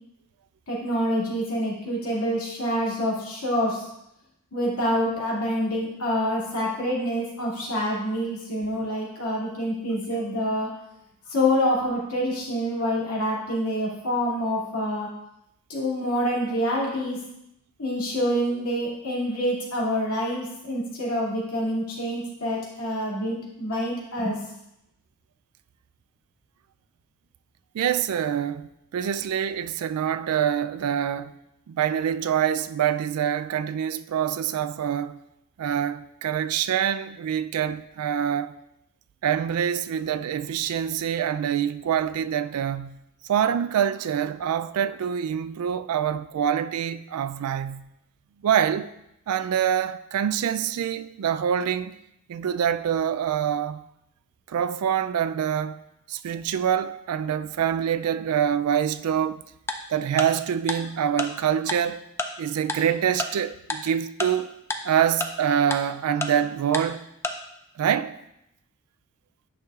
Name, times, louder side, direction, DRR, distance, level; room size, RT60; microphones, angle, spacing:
voice 1, 0.7-3.9 4.5-10.7 11.3-15.1 15.7-17.2 17.8-24.4, equal, 70° left, 2.4 m, -26 dB
voice 2, 27.7-31.3 31.7-35.2 35.6-38.5 39.2-43.0 43.3-47.9 48.4-48.9 49.3-51.9 52.3-53.8 54.5-55.8 56.1-59.4 59.9-62.0 62.4-64.5 64.8-67.1 67.8-68.2, right 9 dB, 70° right, 0.3 m, -25 dB
Tick-tock, 59.7-59.8 60.2-60.3 60.7-60.8 61.2-61.3 61.7-61.8 62.2-62.3 62.7-62.8 63.2-63.3 63.7-63.8 64.2-64.3 64.7-64.8 65.2-65.3 65.7-65.8 66.2-66.3 66.7-66.8 67.2-67.3, left 2 dB, 10° left, 0.4 m, -27 dB
9.4 x 6.2 x 2.4 m
head